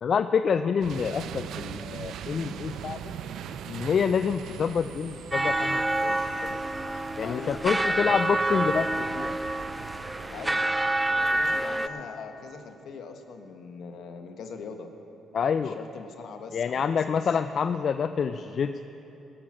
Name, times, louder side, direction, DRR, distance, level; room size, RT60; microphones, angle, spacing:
voice 1, 0.0-3.1 3.7-6.6 7.2-8.9 9.1-9.4 15.3-15.8 16.5-18.8, left 6 dB, 55° left, 9 dB, 0.4 m, -27 dB
sound 1, 0.8-11.5, right 9 dB, 75° right, 0.4 m, -41 dB
sound 2, 1.8-10.2, right 1 dB, 50° right, 3.3 m, -55 dB
sound 3, 5.3-11.9, right 2 dB, 15° right, 0.5 m, -27 dB
voice 2, 7.2-8.1 10.3-10.7 11.3-14.9 15.5-17.2, left 5 dB, 70° left, 5 dB, 1.3 m, -41 dB
20.0 x 7.5 x 6.2 m, 3.0 s
cardioid pair, 90°, 0 cm